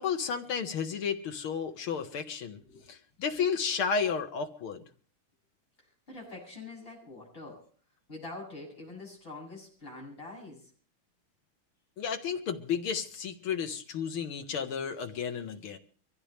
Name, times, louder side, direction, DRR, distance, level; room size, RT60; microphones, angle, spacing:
voice 1, 0.0-2.6 2.9-4.8 12.0-15.8, left 6 dB, 80° left, 6 dB, 2.3 m, -32 dB
voice 2, 5.8-7.6 8.1-10.7, left 2 dB, 25° left, -3 dB, 7.9 m, -45 dB
24.0 x 15.0 x 3.4 m, 0.43 s
omnidirectional pair, 2.3 m